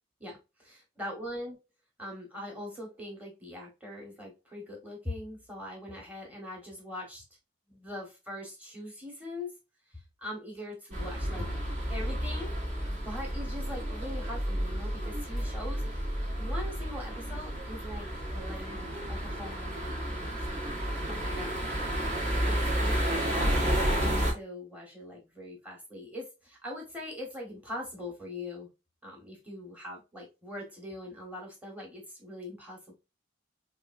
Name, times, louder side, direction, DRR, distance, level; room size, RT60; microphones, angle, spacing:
voice 1, 0.2-0.7 1.0-1.6 2.0-7.2 7.7-9.5 9.9-11.6 11.9-12.5 13.0-16.0 16.4-20.6 20.9-22.0 22.4-23.8 24.3-28.7 29.0-32.9, left 1 dB, 5° right, 0 dB, 1.3 m, -42 dB
sound 1, 10.9-24.3, equal, 35° right, 1.2 m, -31 dB
4.5 x 2.5 x 2.5 m, 0.26 s
head